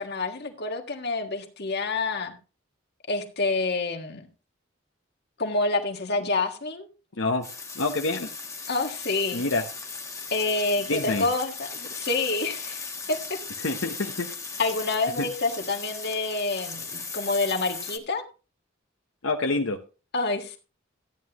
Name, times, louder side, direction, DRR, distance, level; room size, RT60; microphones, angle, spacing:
voice 1, 0.0-2.4 3.1-4.3 5.4-6.9 8.7-9.4 10.3-13.2 14.6-18.2 20.1-20.6, left 3 dB, 55° left, 1.6 m, -28 dB
voice 2, 7.2-7.5 7.7-8.3 9.3-9.6 10.9-11.3 13.6-14.3 15.2-15.3 19.2-19.8, left 3 dB, 85° left, 0.9 m, -27 dB
sound 1, 7.4-18.0, left 4 dB, 15° left, 1.2 m, -37 dB
13.5 x 9.5 x 3.0 m
head